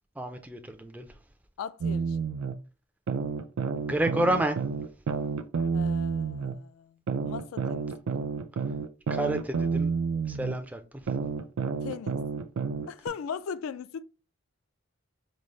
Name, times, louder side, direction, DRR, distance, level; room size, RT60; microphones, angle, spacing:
voice 1, 0.2-1.1 3.8-4.6 9.1-9.9 10.3-10.8, right 1 dB, 5° right, 0.4 m, -29 dB
voice 2, 1.6-2.2 5.7-6.9 7.2-7.9 11.8-12.2 12.9-14.0, left 6 dB, 85° left, 0.3 m, -38 dB
sound 1, 1.8-2.5 3.1-6.5 7.1-10.5 11.1-13.1, right 5 dB, 80° right, 0.4 m, -30 dB
5.1 x 2.0 x 3.1 m
head